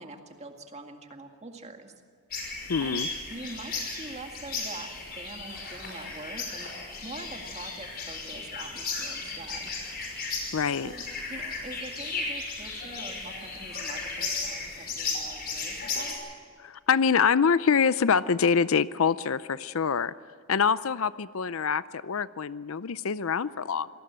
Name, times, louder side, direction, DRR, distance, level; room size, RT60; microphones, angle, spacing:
voice 1, 0.0-1.9 2.8-6.7 7.0-9.7 10.2-10.3 10.8-11.0 11.3-16.2, right 2 dB, 30° right, 4 dB, 2.1 m, -44 dB
sound 1, 2.3-16.1, left 4 dB, 45° left, 5.7 m, -35 dB
voice 2, 2.7-3.1 10.5-10.9 16.6-20.1 20.5-23.9, left 6 dB, 65° left, 16 dB, 0.5 m, -25 dB
26.5 x 19.0 x 7.7 m, 2.1 s
head